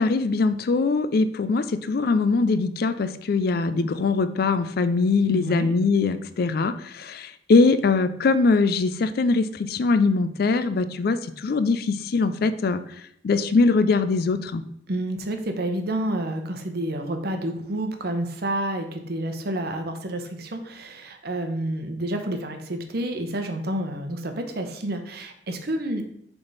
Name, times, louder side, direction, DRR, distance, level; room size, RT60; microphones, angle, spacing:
voice 1, 0.0-11.2 11.4-12.8 13.2-14.6, left 4 dB, 60° left, 12 dB, 0.4 m, -22 dB
voice 2, 5.3-5.7 14.9-26.0, right 1 dB, 60° right, 6 dB, 0.8 m, -29 dB
6.8 x 3.6 x 4.0 m, 0.70 s
head